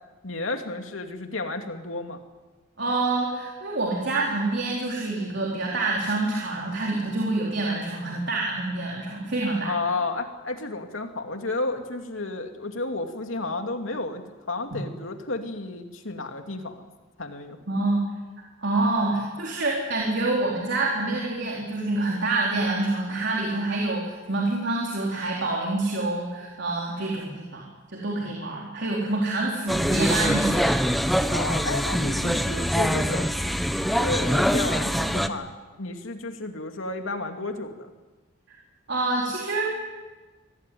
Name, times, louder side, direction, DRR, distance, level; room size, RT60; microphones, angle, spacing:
voice 1, 0.2-2.2 9.6-16.8 17.2-17.6 31.3-33.3 33.8-35.5 35.8-37.9, left 2 dB, 85° left, 5 dB, 2.7 m, -32 dB
voice 2, 2.8-9.7 17.7-18.1 18.6-30.7 38.5-38.6 38.9-39.7, right 2 dB, 60° right, -3 dB, 4.2 m, -27 dB
sound 1, 29.7-35.3, equal, ahead, 1.1 m, -24 dB
24.5 x 18.5 x 9.4 m, 1.3 s
head